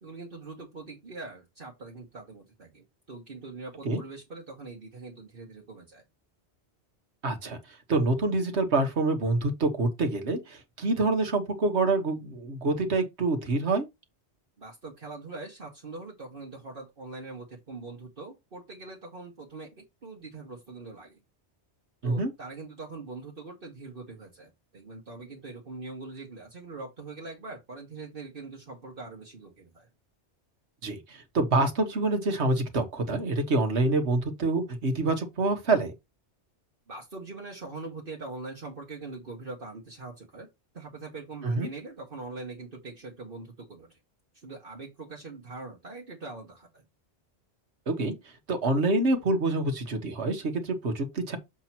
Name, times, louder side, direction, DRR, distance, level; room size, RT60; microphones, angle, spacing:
voice 1, 0.0-6.0 14.6-21.2 22.0-29.9 36.9-40.5 40.7-44.0 44.3-46.8, right 3 dB, 50° right, 1.6 m, -42 dB
voice 2, 7.2-7.6 7.9-13.8 22.0-22.3 30.8-35.9 41.4-41.7 47.9-48.1 48.5-51.4, right 2 dB, 75° right, 1.6 m, -26 dB
7.2 x 2.9 x 5.9 m
omnidirectional pair, 1.1 m